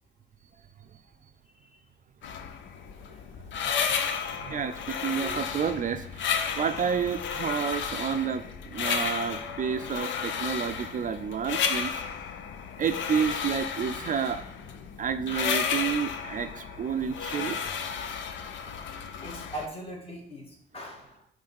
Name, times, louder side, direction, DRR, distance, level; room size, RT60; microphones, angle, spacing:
sound 1, 2.2-19.7, left 7 dB, 75° left, 0.6 m, -33 dB
voice 1, 4.4-12.0 12.8-14.4 15.0-18.1, right 7 dB, 40° right, 10 dB, 0.4 m, -30 dB
voice 2, 19.2-21.3, right 1 dB, 30° left, -1 dB, 2.0 m, -40 dB
5.6 x 3.2 x 5.3 m, 0.67 s
cardioid pair, 90°, 20 cm